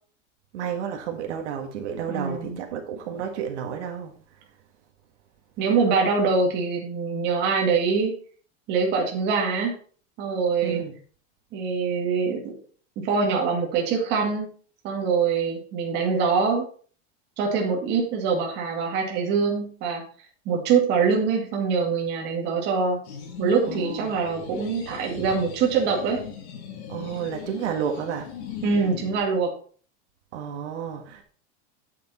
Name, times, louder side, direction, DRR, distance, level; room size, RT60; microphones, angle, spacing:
voice 1, 0.5-4.1 10.6-11.0 23.7-24.2 26.9-28.3 30.3-31.2, right 8 dB, 80° right, 1.9 m, -31 dB
voice 2, 2.1-2.6 5.6-8.1 8.7-9.7 10.2-10.8 11.5-12.4 13.0-14.5 14.8-16.6 17.4-20.0 20.5-23.0 23.4-26.2 28.6-29.5, right 5 dB, 30° right, 2.2 m, -24 dB
sound 1, 23.0-29.2, left 8 dB, 70° left, 3.1 m, -38 dB
8.8 x 6.7 x 4.3 m
supercardioid pair, 175°, 35 cm